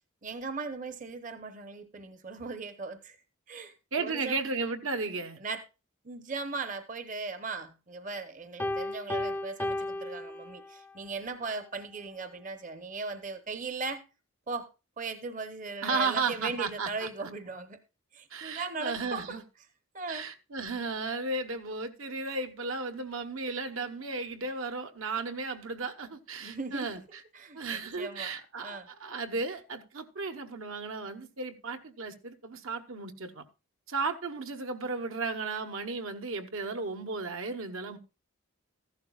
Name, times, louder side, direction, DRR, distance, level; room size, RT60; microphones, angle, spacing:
voice 1, 0.2-3.2 3.5-4.4 5.4-5.6 6.0-14.0 14.5-14.7 15.0-17.8 18.1-19.4 19.9-20.3 26.4-27.0 27.3-28.3 28.6-28.9, right 4 dB, 35° right, 0.8 m, -38 dB
voice 2, 3.9-5.4 15.8-17.3 18.3-19.4 20.1-27.2 27.5-33.4 33.9-38.0, right 4 dB, 75° right, 1.1 m, -34 dB
Piano, 8.6-11.0, left 1 dB, 10° left, 0.5 m, -34 dB
14.5 x 11.5 x 2.3 m
head